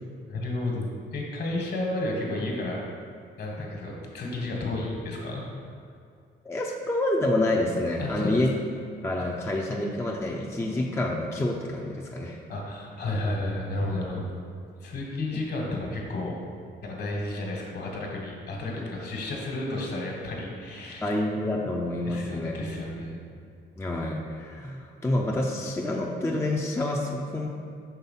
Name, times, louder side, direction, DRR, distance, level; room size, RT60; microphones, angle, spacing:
voice 1, 0.3-2.8 3.4-5.7 8.0-8.4 12.5-14.3 14.8-16.3 16.8-21.1 22.0-23.2, left 2 dB, 55° left, -1 dB, 1.5 m, -32 dB
voice 2, 6.4-8.5 9.0-12.4 21.0-22.6 23.8-27.5, left 1 dB, 15° left, -1 dB, 0.5 m, -28 dB
5.7 x 3.4 x 5.5 m, 2.3 s
cardioid pair, 90°, 20 cm